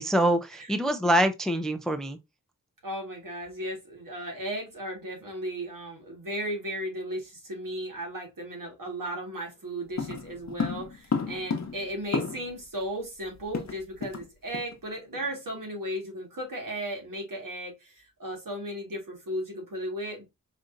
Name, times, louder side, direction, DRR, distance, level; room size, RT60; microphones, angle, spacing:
voice 1, 0.0-2.2, right 1 dB, ahead, 0.4 m, -25 dB
voice 2, 2.8-20.2, right 1 dB, 70° right, 1.8 m, -35 dB
sound 1, 10.0-12.6 12.9-13.0 13.2-14.3 14.5-14.7 15.1-15.3, left 5 dB, 50° left, 0.8 m, -32 dB
4.9 x 2.8 x 2.5 m
wide cardioid pair, 85°, 34 cm